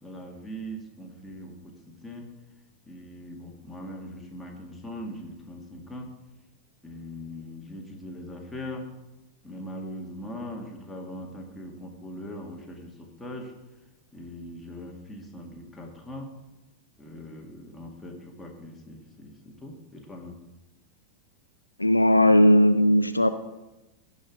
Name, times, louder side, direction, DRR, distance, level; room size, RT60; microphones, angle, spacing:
voice 1, 0.0-2.3 2.9-6.1 6.8-8.8 9.4-13.5 14.1-16.3 17.0-20.4, equal, 5° left, 0 dB, 1.9 m, -40 dB
voice 2, 21.8-23.3, equal, 85° left, 10 dB, 0.5 m, -18 dB
16.5 x 5.5 x 4.7 m, 1.0 s
figure-of-eight pair, 90°, 0 cm